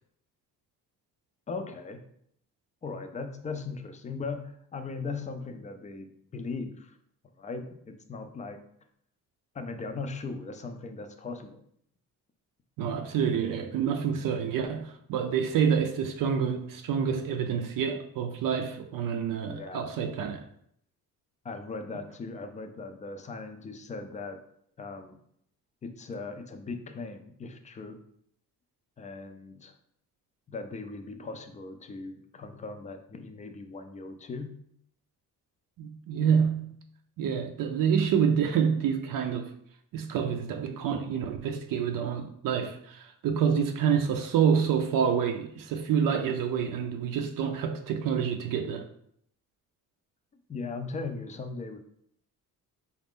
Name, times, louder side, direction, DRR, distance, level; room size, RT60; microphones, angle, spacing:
voice 1, 1.5-2.0 2.8-7.0 7.4-8.6 9.5-11.6 19.4-19.8 21.4-24.4 24.8-25.2 25.8-28.0 29.0-29.7 30.5-34.5 50.5-51.8, left 4 dB, 20° left, 0.4 m, -38 dB
voice 2, 12.8-20.4 35.8-36.7 37.2-39.5 39.9-48.8, right 7 dB, 70° right, 0.5 m, -27 dB
4.1 x 2.4 x 3.5 m
cardioid pair, 120°, 35 cm